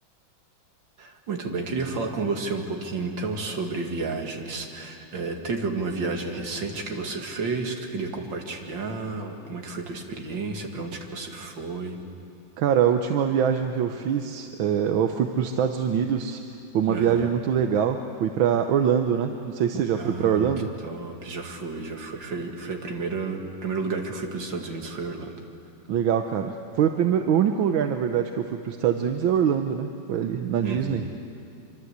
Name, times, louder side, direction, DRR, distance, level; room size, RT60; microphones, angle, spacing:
voice 1, 1.0-12.0 16.9-17.3 20.0-20.5 20.8-25.4 30.6-31.1, right 3 dB, 70° right, 2 dB, 2.8 m, -31 dB
voice 2, 12.6-16.4 16.7-20.7 25.9-31.0, right 8 dB, 85° right, 6 dB, 1.7 m, -24 dB
26.0 x 24.5 x 8.1 m, 2.6 s
omnidirectional pair, 2.1 m